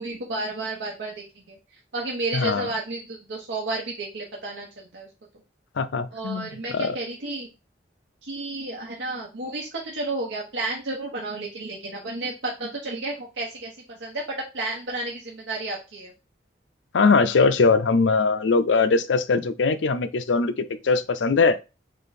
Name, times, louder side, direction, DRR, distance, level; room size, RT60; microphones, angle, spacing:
voice 1, 0.0-1.6 1.9-5.1 6.1-7.5 8.2-13.7 14.0-16.1, right 2 dB, 85° right, 1.0 m, -32 dB
voice 2, 2.3-2.7 5.8-7.0 16.9-20.5 20.8-21.6, left 4 dB, 90° left, 0.5 m, -21 dB
3.8 x 3.4 x 4.1 m
head